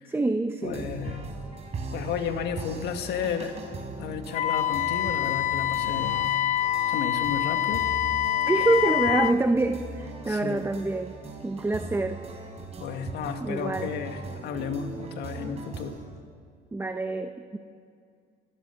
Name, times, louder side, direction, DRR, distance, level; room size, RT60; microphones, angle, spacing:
voice 1, 0.1-0.9 8.5-11.1 11.4-12.2 13.4-13.9 16.7-17.6, right 2 dB, 15° right, 8 dB, 0.9 m, -26 dB
voice 2, 0.6-1.2 1.9-3.6 4.0-6.3 6.9-7.8 10.2-10.6 12.8-16.0, left 7 dB, 75° left, 6 dB, 2.0 m, -33 dB
sound 1, 0.6-16.0, right 3 dB, 40° right, 4.4 m, -39 dB
Wind instrument woodwind instrument, 4.3-9.4, left 12 dB, 50° left, 0.8 m, -26 dB
24.5 x 16.5 x 6.9 m, 2.2 s
cardioid pair, 110°, 17 cm